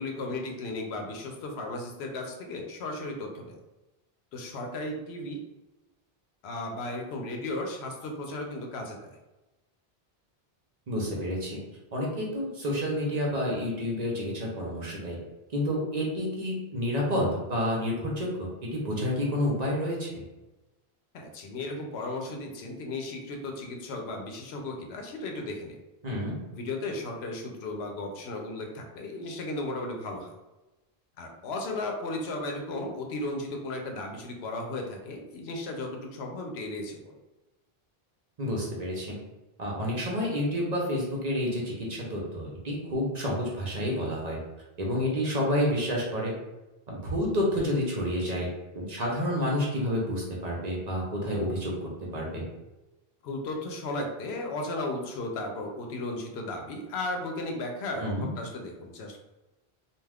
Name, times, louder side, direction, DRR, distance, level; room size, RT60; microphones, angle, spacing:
voice 1, 0.0-3.6 4.3-5.4 6.4-9.2 21.1-25.8 26.5-30.3 31.2-37.1 48.2-48.5 53.2-59.2, left 2 dB, 90° left, 2 dB, 0.9 m, -35 dB
voice 2, 10.9-11.6 11.9-15.2 15.5-20.1 26.0-26.4 38.4-39.2 39.6-44.4 44.8-46.3 46.9-48.5 48.7-52.5 58.0-58.3, equal, 45° right, -3 dB, 0.7 m, -29 dB
2.4 x 2.3 x 3.3 m, 1.0 s
omnidirectional pair, 1.0 m